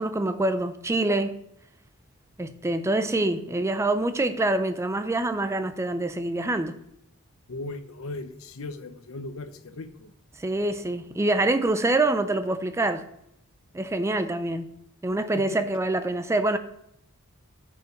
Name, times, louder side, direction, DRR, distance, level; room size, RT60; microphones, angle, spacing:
voice 1, 0.0-1.3 2.4-6.7 10.4-13.0 13.7-14.7 15.0-16.6, right 2 dB, 10° right, 0.4 m, -25 dB
voice 2, 7.5-10.1 15.3-15.4, left 2 dB, 65° left, 0.7 m, -37 dB
6.5 x 5.2 x 7.0 m
head